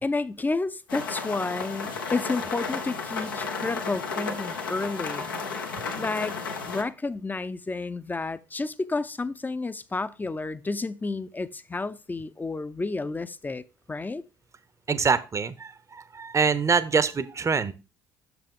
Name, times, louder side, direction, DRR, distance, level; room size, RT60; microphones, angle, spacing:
voice 1, 0.0-5.3 6.0-6.4 6.7-14.2, left 3 dB, 15° left, 0.6 m, -31 dB
sound 1, 0.9-6.8, left 4 dB, 85° left, 0.9 m, -33 dB
voice 2, 14.9-17.7, right 5 dB, 25° right, 0.7 m, -25 dB
6.5 x 5.9 x 3.7 m
hypercardioid pair, 55°, 11 cm